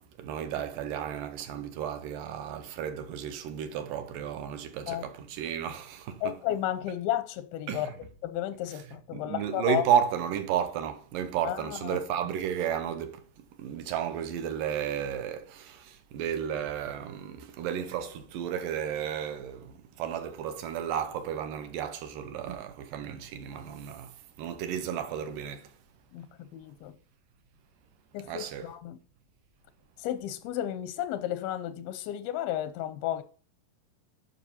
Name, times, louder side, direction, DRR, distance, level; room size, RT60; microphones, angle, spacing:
voice 1, 0.2-6.4 7.7-7.9 9.1-13.2 13.6-25.7 28.3-28.7, right 9 dB, 75° right, 2.3 m, -33 dB
voice 2, 6.2-8.0 8.2-9.8 11.4-12.0 26.1-26.9 28.1-29.0 30.0-33.2, left 12 dB, 90° left, 2.5 m, -33 dB
9.5 x 5.9 x 2.8 m
omnidirectional pair, 4.2 m